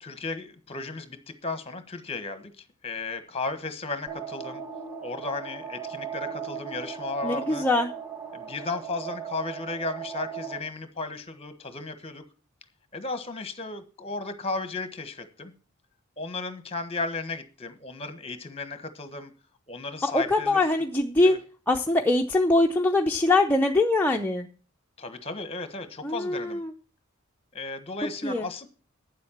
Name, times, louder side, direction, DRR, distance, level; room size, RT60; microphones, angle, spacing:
voice 1, 0.0-4.6 5.0-7.6 8.3-12.2 12.9-15.5 16.2-19.3 19.7-20.6 21.2-21.4 25.0-26.6 27.5-28.7, left 3 dB, 30° left, 10 dB, 1.3 m, -35 dB
sound 1, 4.1-10.6, right 7 dB, 10° right, 2.9 m, -37 dB
voice 2, 7.2-7.9 20.0-21.4 21.7-24.5 26.0-26.7 28.2-28.5, left 2 dB, 10° left, 1 dB, 0.6 m, -23 dB
9.3 x 7.6 x 7.3 m, 0.36 s
head